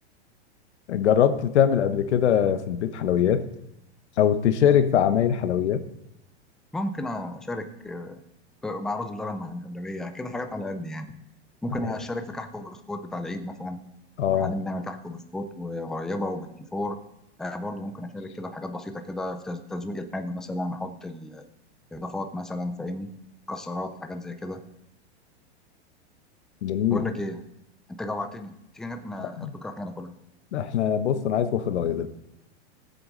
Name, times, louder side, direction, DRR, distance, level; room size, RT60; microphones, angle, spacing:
voice 1, 0.9-3.4 4.2-5.8 14.2-14.5 26.6-27.0 29.2-29.5 30.5-32.1, left 9 dB, 90° left, 10 dB, 1.1 m, -22 dB
voice 2, 6.7-8.2 8.6-11.2 11.6-13.8 14.3-17.0 17.4-21.4 21.9-23.1 23.5-24.6 26.9-27.4 27.9-30.1, left 1 dB, ahead, 7 dB, 0.4 m, -33 dB
17.5 x 7.8 x 3.9 m, 0.83 s
supercardioid pair, 145°, 33 cm